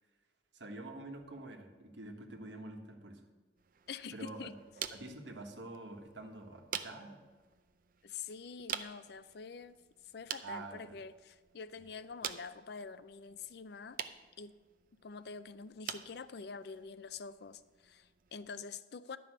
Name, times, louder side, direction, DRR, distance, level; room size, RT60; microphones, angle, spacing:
voice 1, 0.5-3.2 4.1-4.5 4.9-7.2 10.4-11.0, right 2 dB, 85° right, 4 dB, 1.4 m, -47 dB
sound 1, 3.6-18.6, right 9 dB, 50° right, 0.5 m, -48 dB
voice 2, 3.9-4.5 8.0-9.8 10.1-14.0 14.4-14.5 15.0-19.2, left 5 dB, 60° left, 14 dB, 0.5 m, -46 dB
11.5 x 5.4 x 7.7 m, 1.4 s
head